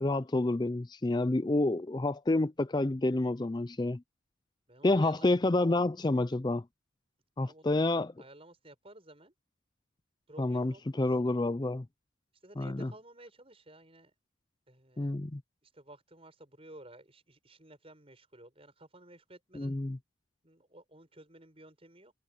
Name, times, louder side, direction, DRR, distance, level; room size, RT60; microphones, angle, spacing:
voice 1, 0.0-4.0 4.8-6.6 7.4-8.1 10.4-11.9 12.6-12.9 15.0-15.4 19.5-20.0, left 2 dB, 20° left, 0.4 m, -29 dB
voice 2, 4.7-5.3 7.4-7.9 8.2-9.3 10.3-11.1 12.4-14.1 14.7-15.2 15.6-19.8 20.4-22.1, right 1 dB, 30° right, 6.9 m, -54 dB
head